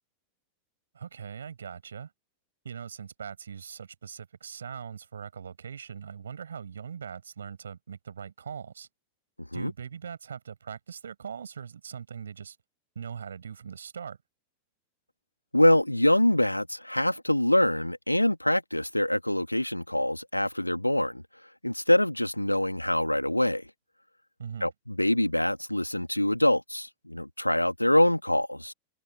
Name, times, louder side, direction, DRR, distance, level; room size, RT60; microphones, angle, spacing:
voice 1, 0.9-2.1 2.6-8.9 9.5-12.6 12.9-14.2 24.4-24.7, right 7 dB, 70° right, 7.7 m, -41 dB
voice 2, 9.4-9.7 15.5-21.2 21.6-23.7 24.6-28.7, left 1 dB, 85° left, 3.0 m, -25 dB
figure-of-eight pair, 90°, 0 cm